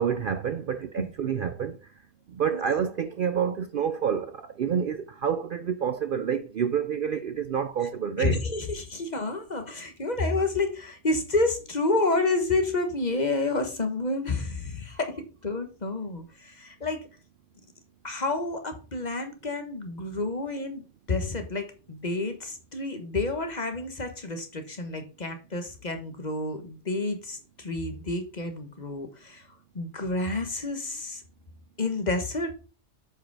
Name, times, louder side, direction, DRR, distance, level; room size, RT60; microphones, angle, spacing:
voice 1, 0.0-1.8 2.3-8.4, right 7 dB, 60° right, 0.6 m, -28 dB
voice 2, 8.2-15.2 15.4-17.0 18.0-20.8 21.1-29.5 29.7-31.2 31.8-32.5, left 2 dB, 35° left, 1.3 m, -29 dB
8.0 x 5.1 x 4.7 m
omnidirectional pair, 1.3 m